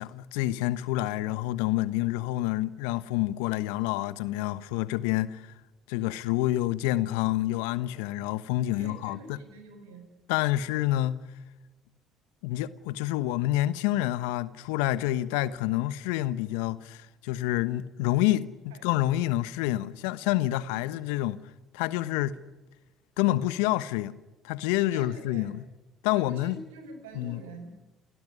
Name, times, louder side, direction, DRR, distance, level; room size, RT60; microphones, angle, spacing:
voice 1, 0.0-5.5 5.9-9.4 10.3-11.2 12.4-22.4 23.2-24.2 24.4-25.6 26.0-26.6 27.1-27.4, left 15 dB, 75° left, 1.1 m, -28 dB
voice 2, 8.7-10.1 18.7-19.0 20.7-20.9 24.9-25.5 26.1-27.9, right 2 dB, 80° right, 6.7 m, -46 dB
29.5 x 17.5 x 9.8 m
hypercardioid pair, 55°, 0 cm